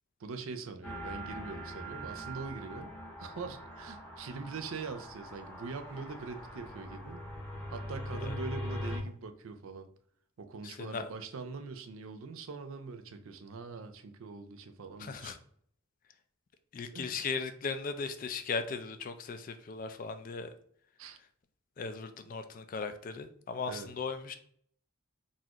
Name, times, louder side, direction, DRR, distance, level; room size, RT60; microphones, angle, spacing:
voice 1, 0.2-2.9 3.2-7.2 7.7-9.9 10.4-15.3 16.9-17.1 21.0-21.2 23.7-23.9, right 4 dB, 75° right, 8 dB, 0.4 m, -42 dB
sound 1, 0.8-9.0, equal, 10° left, 0.7 m, -42 dB
voice 2, 10.6-11.1 15.0-15.4 16.7-20.5 21.8-24.4, left 5 dB, 40° left, 9 dB, 0.3 m, -37 dB
4.0 x 2.4 x 2.8 m, 0.64 s
head